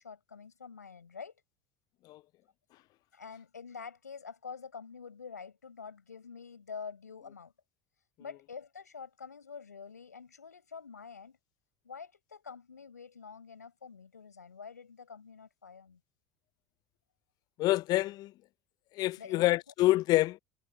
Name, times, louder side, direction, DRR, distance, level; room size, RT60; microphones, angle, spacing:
voice 1, 0.0-1.3 3.1-7.5 8.2-11.4 11.8-16.0 19.2-19.6, left 6 dB, 85° left, 5.8 m, -47 dB
voice 2, 17.6-18.3 19.0-20.4, left 17 dB, 50° left, 0.6 m, -27 dB
figure-of-eight pair, 65°, 9 cm